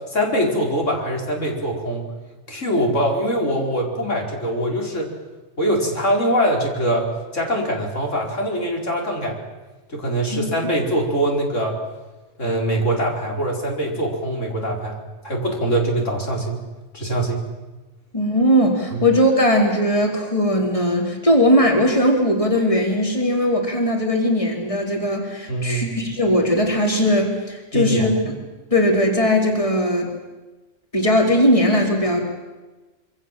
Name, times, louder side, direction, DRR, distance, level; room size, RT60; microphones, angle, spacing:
voice 1, 0.1-2.1 2.5-5.1 5.6-7.1 7.3-9.4 9.9-11.8 12.4-16.6 16.9-17.4 18.9-19.0 25.5-25.8 27.7-28.1, right 1 dB, 80° left, 0 dB, 5.2 m, -23 dB
voice 2, 18.1-28.1 28.7-30.1 30.9-32.2, equal, 25° left, 1 dB, 4.2 m, -19 dB
26.5 x 25.0 x 7.6 m, 1.2 s
omnidirectional pair, 1.3 m